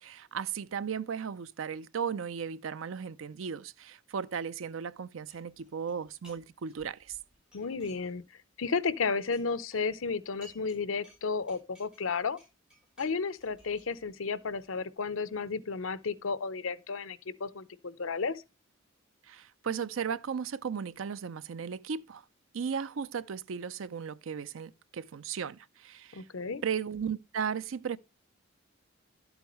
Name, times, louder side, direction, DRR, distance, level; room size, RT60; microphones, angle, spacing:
voice 1, 0.0-7.2 19.3-22.2 22.5-26.2 26.6-28.0, right 7 dB, 85° right, 0.5 m, -36 dB
sound 1, 5.3-6.4 6.7-8.4 8.7-10.8 11.0-14.8, equal, 5° right, 6.3 m, -59 dB
voice 2, 7.5-8.2 8.6-12.4 13.0-18.4 26.1-26.6, left 4 dB, 85° left, 0.7 m, -33 dB
11.5 x 8.1 x 3.1 m
head